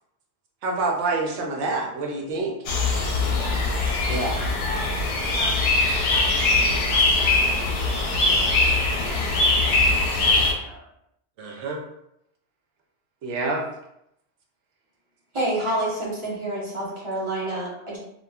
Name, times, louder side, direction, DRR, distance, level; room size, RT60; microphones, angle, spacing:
voice 1, 0.6-2.5 4.1-4.3 11.4-11.8 13.2-13.6, right 3 dB, 80° right, 0 dB, 0.9 m, -27 dB
sound 1, 2.7-10.5, left 2 dB, 70° left, 0.8 m, -22 dB
voice 2, 3.2-3.6 3.9-10.8, equal, 30° left, -8 dB, 0.5 m, -41 dB
voice 3, 15.3-18.0, right 1 dB, 30° right, -5 dB, 0.8 m, -28 dB
2.9 x 2.2 x 2.3 m, 0.78 s
omnidirectional pair, 1.2 m